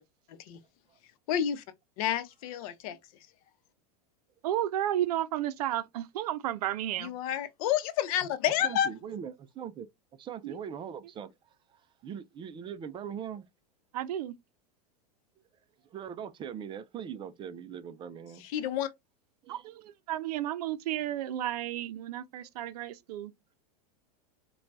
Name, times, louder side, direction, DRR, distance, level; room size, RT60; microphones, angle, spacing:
voice 1, 0.3-0.6 1.3-1.6 2.0-3.0 7.0-8.9 18.4-18.9, left 10 dB, 60° left, 0.7 m, -30 dB
voice 2, 4.4-7.1 10.4-10.6 13.9-14.3 19.5-23.6, right 12 dB, 70° right, 0.5 m, -33 dB
voice 3, 8.6-9.9 10.2-13.4 15.9-18.5 19.4-19.7, right 8 dB, 25° right, 0.4 m, -41 dB
4.4 x 2.2 x 2.5 m
hypercardioid pair, 120°, 21 cm